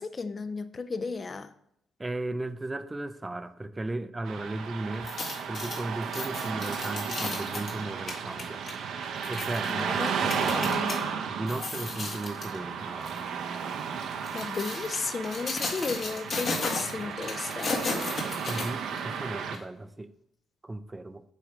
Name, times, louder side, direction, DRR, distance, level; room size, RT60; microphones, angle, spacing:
voice 1, 0.0-1.5 9.7-11.2 14.3-17.8, left 4 dB, 35° left, 0.5 m, -34 dB
voice 2, 2.0-5.1 5.4-8.6 9.3-9.9 10.2-10.6 11.3-13.3 18.4-20.1 20.6-21.2, right 2 dB, 15° right, 0.5 m, -36 dB
Car passing by / Traffic noise roadway noise, 4.3-19.6, right 6 dB, 80° right, 0.7 m, -34 dB
sound 1, 4.9-11.0 11.4-12.6 13.0-13.2 14.0-19.1 19.5-19.6, left 3 dB, 55° left, 1.6 m, -35 dB
8.4 x 3.3 x 4.9 m
cardioid pair, 90°, 0 cm